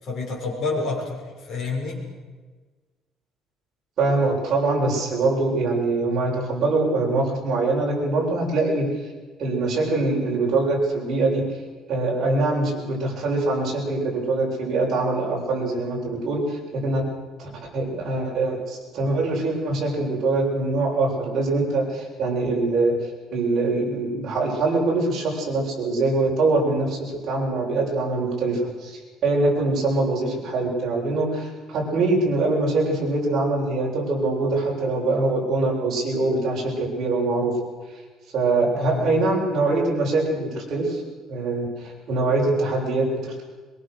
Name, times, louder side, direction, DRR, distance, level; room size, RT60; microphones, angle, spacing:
voice 1, 0.0-2.1 38.7-39.1, left 3 dB, 40° left, -2 dB, 7.0 m, -29 dB
voice 2, 4.0-8.9 9.4-11.4 11.9-17.0 17.4-22.9 23.3-37.5 38.3-41.0 41.3-43.4, right 2 dB, 40° right, -3 dB, 7.7 m, -23 dB
23.0 x 22.5 x 6.7 m, 1.4 s
cardioid pair, 165°, 0 cm